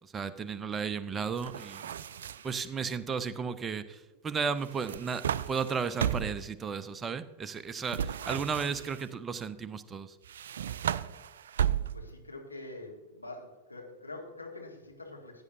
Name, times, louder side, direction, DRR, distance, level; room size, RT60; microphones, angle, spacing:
voice 1, 0.0-2.0 2.4-10.2, right 6 dB, 20° right, 12 dB, 0.6 m, -34 dB
sound 1, 1.4-2.6 4.6-6.5 7.9-9.1 10.2-12.2, right 9 dB, 60° right, 0.3 m, -34 dB
voice 2, 11.9-15.4, left 2 dB, 85° left, 0 dB, 2.0 m, -45 dB
15.5 x 9.7 x 2.6 m, 1.2 s
figure-of-eight pair, 90°, 0 cm